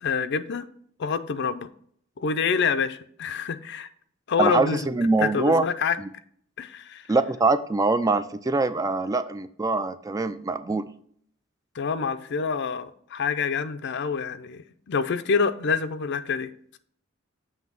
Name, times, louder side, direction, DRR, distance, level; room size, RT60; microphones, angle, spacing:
voice 1, 0.0-0.7 1.0-1.7 2.2-3.9 4.3-4.9 5.2-6.0 6.6-7.1 11.7-16.5, left 5 dB, 60° left, 0.5 m, -27 dB
voice 2, 4.4-5.6 6.0-6.1 7.1-10.9, right 3 dB, 15° right, 0.3 m, -23 dB
7.3 x 3.3 x 5.9 m
head